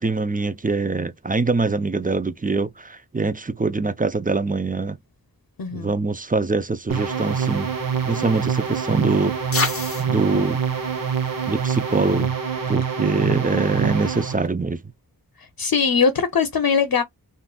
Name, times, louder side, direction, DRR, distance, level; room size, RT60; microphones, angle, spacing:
voice 1, 0.0-5.0 5.7-7.7 8.1-9.3 10.0-10.6 11.5-12.3 12.7-14.8, right 3 dB, 25° right, 0.5 m, -23 dB
voice 2, 5.6-5.9 15.4-17.0, left 6 dB, 70° left, 0.7 m, -21 dB
sound 1, 6.9-14.5, right 6 dB, 60° right, 1.0 m, -26 dB
sound 2, 7.2-12.3, left 4 dB, 35° left, 0.8 m, -34 dB
3.7 x 2.6 x 2.3 m
wide cardioid pair, 55°, 37 cm